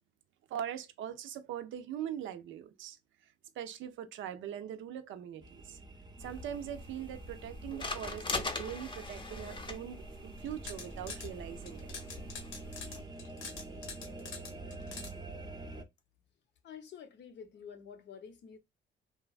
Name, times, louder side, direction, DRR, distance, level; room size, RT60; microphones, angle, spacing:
voice 1, 0.5-3.0 3.6-5.8 6.2-11.9 12.8-13.0, right 10 dB, 75° right, 0.5 m, -42 dB
sound 1, 5.4-15.8, right 2 dB, 20° right, 0.5 m, -47 dB
sound 2, 6.2-13.0, left 3 dB, 25° left, 0.6 m, -42 dB
sound 3, 10.4-11.3 11.7-15.1, left 4 dB, 85° left, 1.0 m, -45 dB
voice 2, 16.6-18.6, left 7 dB, 65° left, 0.7 m, -49 dB
3.0 x 2.2 x 2.3 m
cardioid pair, 90°, 20 cm